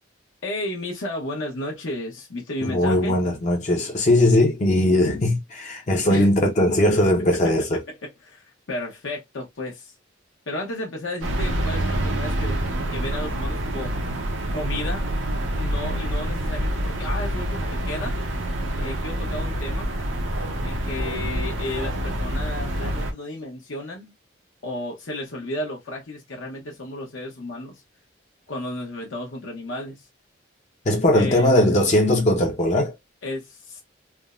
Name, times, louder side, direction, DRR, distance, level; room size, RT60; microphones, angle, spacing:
voice 1, 0.4-3.2 6.1-6.3 7.7-9.9 10.5-12.6 12.9-13.9 14.5-15.0 15.5-18.2 18.8-19.9 20.6-24.1 24.6-27.8 28.5-30.0 31.1-31.5 33.2-33.8, left 1 dB, 80° left, 0.8 m, -33 dB
voice 2, 2.6-7.8 30.9-32.9, left 1 dB, 35° left, 0.5 m, -19 dB
sound 1, 11.2-23.1, right 1 dB, 85° right, 0.7 m, -27 dB
3.3 x 2.0 x 2.3 m
head